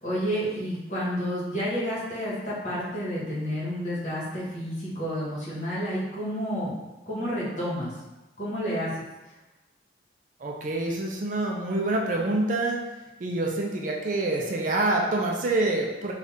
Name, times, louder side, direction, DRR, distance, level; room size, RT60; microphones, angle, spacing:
voice 1, 0.0-6.7 7.1-7.9 8.4-9.0, equal, 40° left, -8 dB, 1.4 m, -30 dB
voice 2, 10.4-12.8 13.2-16.1, right 2 dB, 45° right, 0 dB, 0.4 m, -26 dB
4.0 x 2.4 x 3.6 m, 1.1 s
head